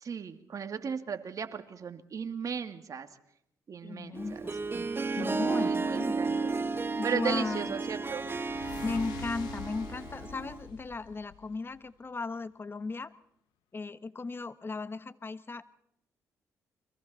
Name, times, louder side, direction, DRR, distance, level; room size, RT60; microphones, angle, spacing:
voice 1, 0.0-3.1 3.7-4.2 5.2-6.5 7.0-8.3, right 6 dB, 50° right, 8 dB, 2.3 m, -36 dB
voice 2, 3.8-4.9 5.2-6.6 7.0-7.7 8.8-13.1 13.7-15.6, left 3 dB, 30° left, 14 dB, 1.4 m, -36 dB
Harp, 4.1-10.7, right 4 dB, 30° right, 1.4 m, -33 dB
sound 1, 7.0-11.9, left 13 dB, 85° left, 0.9 m, -47 dB
30.0 x 23.5 x 4.3 m, 0.74 s
supercardioid pair, 55°, 7 cm